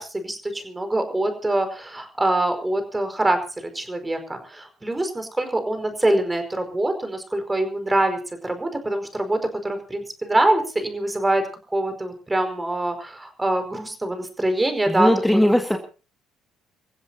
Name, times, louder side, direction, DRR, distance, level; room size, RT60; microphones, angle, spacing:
voice 1, 0.0-11.4 11.7-15.4, right 1 dB, 15° right, 7 dB, 5.1 m, -24 dB
voice 2, 14.9-15.8, left 1 dB, 5° left, 5 dB, 1.9 m, -19 dB
28.0 x 15.5 x 2.8 m, 0.35 s
hypercardioid pair, 55°, 0 cm